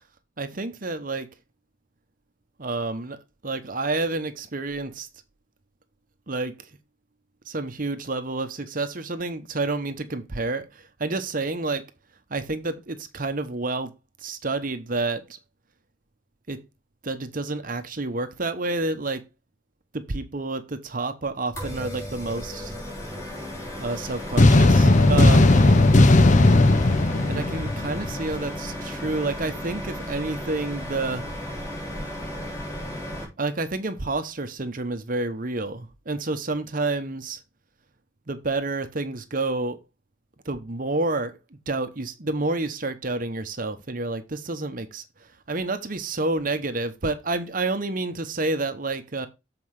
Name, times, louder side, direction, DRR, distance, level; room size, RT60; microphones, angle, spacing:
voice 1, 0.4-1.3 2.6-3.2 3.4-5.1 6.3-6.5 7.5-11.8 12.3-13.9 14.2-15.4 16.5-16.6 17.0-19.2 19.9-22.8 23.8-25.8 27.3-31.3 33.4-37.4 38.3-39.8 40.4-49.3, right 2 dB, 45° right, 0.9 m, -29 dB
sound 1, 21.6-33.2, left 1 dB, 15° left, 3.6 m, -34 dB
sound 2, 24.4-28.3, left 2 dB, 40° left, 0.6 m, -16 dB
7.7 x 4.9 x 4.8 m
head